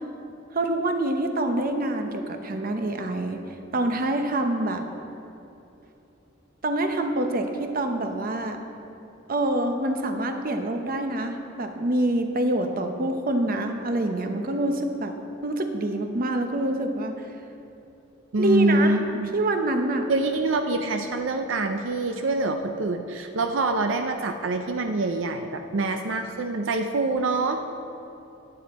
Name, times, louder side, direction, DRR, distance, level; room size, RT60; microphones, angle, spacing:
voice 1, 0.5-3.4 3.7-4.8 6.6-8.6 9.3-15.1 15.4-17.1 18.4-18.9 19.3-20.1, right 1 dB, 50° right, 5 dB, 0.8 m, -26 dB
voice 2, 18.3-19.3 20.1-27.6, right 2 dB, 80° right, 5 dB, 0.5 m, -25 dB
10.0 x 10.0 x 4.2 m, 2.9 s
head